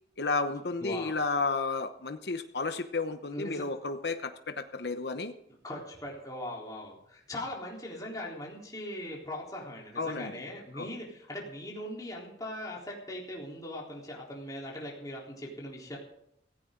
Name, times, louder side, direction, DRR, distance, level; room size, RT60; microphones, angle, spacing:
voice 1, 0.2-5.3 10.0-10.3 10.7-10.9, left 3 dB, 70° left, 8 dB, 0.9 m, -32 dB
voice 2, 0.8-1.2 3.3-3.6 5.6-16.0, left 1 dB, 20° left, -3 dB, 3.8 m, -40 dB
16.5 x 15.5 x 3.9 m, 0.73 s
head